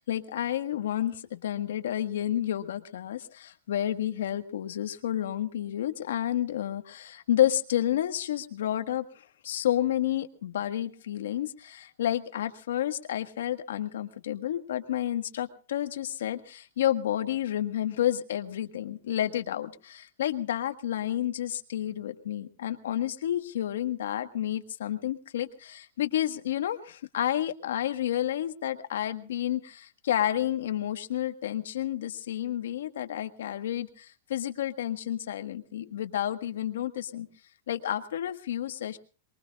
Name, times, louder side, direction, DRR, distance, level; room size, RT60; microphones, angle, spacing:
voice 1, 0.0-37.3 37.7-39.0, left 11 dB, 75° left, 9 dB, 1.6 m, -30 dB
23.5 x 22.5 x 2.5 m, 0.38 s
supercardioid pair, 175°, 0 cm